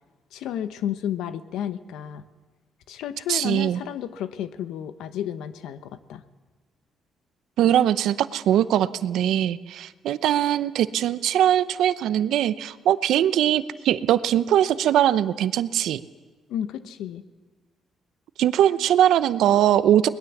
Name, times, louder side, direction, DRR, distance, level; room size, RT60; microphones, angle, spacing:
voice 1, 0.3-2.2 2.9-6.2 16.5-17.2, left 10 dB, 85° left, 12 dB, 1.0 m, -32 dB
voice 2, 3.3-3.8 7.6-16.0 18.4-20.1, right 11 dB, 80° right, 14 dB, 0.7 m, -21 dB
22.0 x 20.0 x 7.3 m, 1.4 s
cardioid pair, 90°, 0 cm